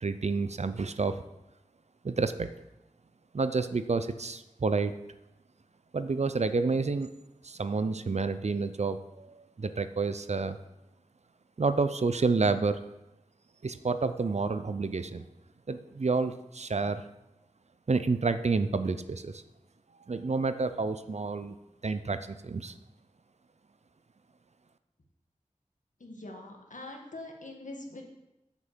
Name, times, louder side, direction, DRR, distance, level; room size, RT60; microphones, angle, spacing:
voice 1, 0.0-1.2 2.0-2.5 3.3-5.0 5.9-7.1 7.4-10.6 11.6-12.9 13.6-15.2 15.7-17.0 17.9-19.4 20.1-21.5 21.8-22.7, right 4 dB, 55° right, 11 dB, 0.6 m, -29 dB
voice 2, 26.0-28.0, left 2 dB, 75° left, 1 dB, 1.8 m, -43 dB
7.8 x 6.0 x 7.4 m, 0.93 s
wide cardioid pair, 70°, 13 cm